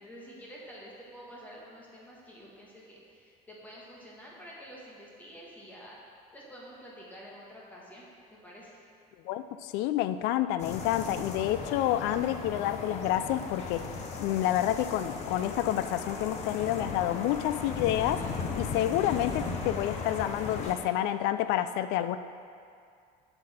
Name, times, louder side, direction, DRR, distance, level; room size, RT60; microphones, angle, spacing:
voice 1, 0.0-5.9 6.3-8.8, equal, 10° left, -5 dB, 1.3 m, -49 dB
voice 2, 9.3-13.9 14.2-18.2 18.6-22.2, left 12 dB, 90° left, 12 dB, 0.4 m, -29 dB
sound 1, 10.6-20.8, left 4 dB, 40° left, 0.7 m, -37 dB
7.4 x 7.0 x 4.3 m, 2.3 s
cardioid pair, 180°, 17 cm